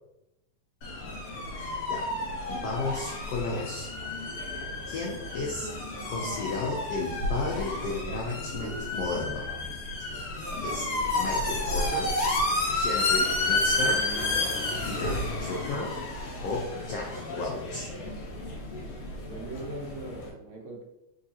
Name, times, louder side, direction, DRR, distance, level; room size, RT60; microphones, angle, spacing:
sound 1, 0.8-20.3, left 2 dB, 60° left, 1.5 m, -31 dB
voice 1, 1.5-2.1 2.5-4.2 4.9-5.7 6.1-9.5 10.1-10.3 10.6-12.1 12.7-14.1 14.8-16.0 16.4-17.9, left 3 dB, 80° left, -2 dB, 1.4 m, -34 dB
voice 2, 19.1-20.8, right 2 dB, 75° right, -1 dB, 2.1 m, -40 dB
4.6 x 3.3 x 2.7 m, 0.89 s
omnidirectional pair, 3.4 m